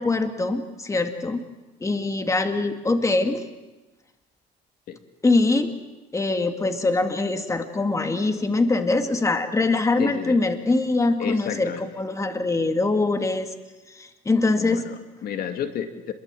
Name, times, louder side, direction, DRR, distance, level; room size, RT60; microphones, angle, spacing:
voice 1, 0.0-1.4 1.8-3.4 5.2-5.8 6.1-13.5 14.0-14.9, left 3 dB, 20° left, 6 dB, 2.0 m, -23 dB
voice 2, 10.0-10.4 11.2-11.9 14.5-16.1, left 8 dB, 65° left, 7 dB, 2.1 m, -31 dB
28.0 x 22.0 x 7.7 m, 1.1 s
cardioid pair, 110°, 17 cm